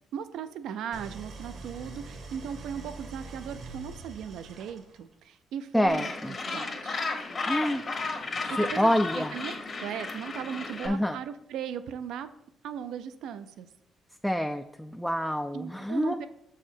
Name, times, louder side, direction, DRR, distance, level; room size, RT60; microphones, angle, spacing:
voice 1, 0.1-7.0 8.5-12.3 12.6-13.7 15.5-16.3, right 8 dB, 80° right, 11 dB, 0.4 m, -38 dB
Idling, 0.9-5.1, right 3 dB, 65° right, 1.0 m, -44 dB
voice 2, 5.7-6.3 7.4-7.8 8.6-9.4 10.8-11.2 14.2-16.2, equal, 5° left, 6 dB, 0.3 m, -27 dB
Gull seagull, 5.9-10.9, left 3 dB, 40° left, 1.2 m, -34 dB
6.7 x 4.8 x 4.4 m, 0.79 s
cardioid pair, 90°, 0 cm